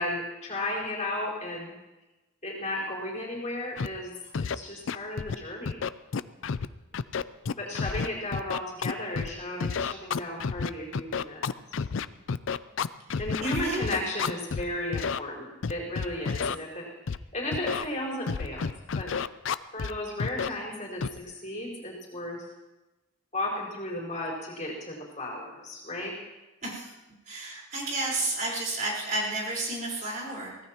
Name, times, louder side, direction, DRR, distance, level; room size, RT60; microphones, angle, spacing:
voice 1, 0.0-1.7 2.4-4.1 4.4-5.8 7.6-11.4 13.2-16.9 17.3-18.6 18.9-19.1 19.7-22.4 23.3-26.1, left 1 dB, 35° left, -4 dB, 4.7 m, -34 dB
Scratching (performance technique), 3.8-3.9 4.3-4.5 4.9-5.3 5.7-6.7 6.9-9.3 9.6-14.6 14.9-15.2 15.6-16.5 17.1-17.2 17.5-17.9 18.3-19.9 20.2-20.5 21.0-21.2, left 5 dB, 70° left, 0.5 m, -30 dB
voice 2, 13.1-13.8 26.6-26.9 27.3-30.6, right 2 dB, 40° right, -4 dB, 4.5 m, -32 dB
24.0 x 17.0 x 3.0 m, 1.1 s
head